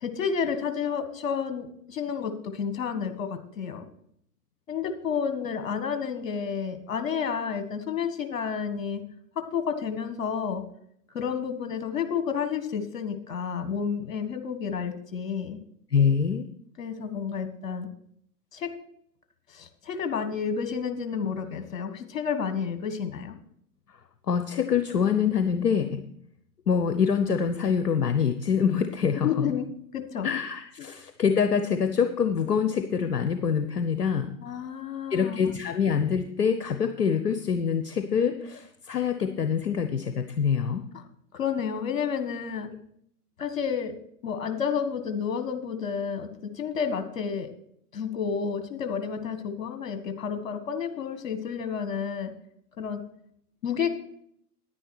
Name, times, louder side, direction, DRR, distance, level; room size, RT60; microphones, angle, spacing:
voice 1, 0.0-3.9 4.7-9.0 9.3-10.6 11.1-15.6 16.8-17.9 18.5-18.7 19.5-23.4 29.2-30.3 34.4-35.6 40.9-41.0 41.3-42.7 43.4-43.9 44.2-47.5 47.9-52.3 52.8-53.0 53.6-53.9, left 6 dB, 55° left, 8 dB, 1.7 m, -30 dB
voice 2, 15.9-16.5 23.9-24.0 24.3-26.0 26.7-29.5 30.2-34.3 35.1-40.8, left 6 dB, 70° left, 8 dB, 1.0 m, -25 dB
10.5 x 10.0 x 4.4 m, 0.69 s
figure-of-eight pair, 110°, 48 cm